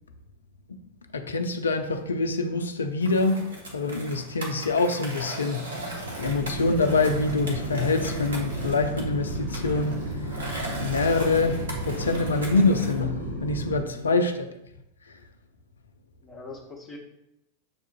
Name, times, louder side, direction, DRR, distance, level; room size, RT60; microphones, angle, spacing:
voice 1, 1.1-3.4 3.7-14.5 15.1-15.2, left 3 dB, 70° left, 0.4 m, -25 dB
Skateboard, 3.0-13.0, right 1 dB, 70° right, 0.9 m, -38 dB
sound 1, 6.2-13.8, right 1 dB, 50° right, 1.3 m, -33 dB
voice 2, 13.8-14.2 16.2-17.0, left 3 dB, 15° left, 1.0 m, -43 dB
7.1 x 2.4 x 2.6 m
figure-of-eight pair, 90°, 0 cm